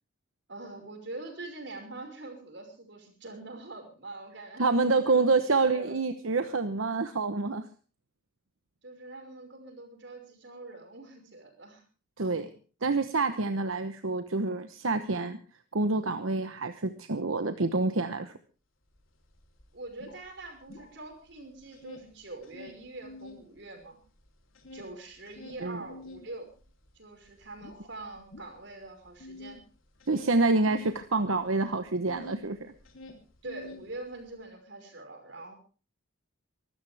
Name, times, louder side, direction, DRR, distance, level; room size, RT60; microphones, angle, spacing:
voice 1, 0.5-6.0 8.8-11.8 19.7-24.0 24.7-26.5 27.0-29.6 33.4-35.6, right 2 dB, 60° right, 4 dB, 5.5 m, -44 dB
voice 2, 4.6-7.6 12.2-12.5 12.8-15.4 15.7-18.3 25.6-25.8 30.1-32.7, right 3 dB, 85° right, 9 dB, 1.0 m, -27 dB
sound 1, 19.0-19.1 19.3-21.3 21.6-23.5 23.8-32.5 32.8-34.3, left 2 dB, 85° left, 3.4 m, -48 dB
24.0 x 13.5 x 3.5 m, 0.37 s
head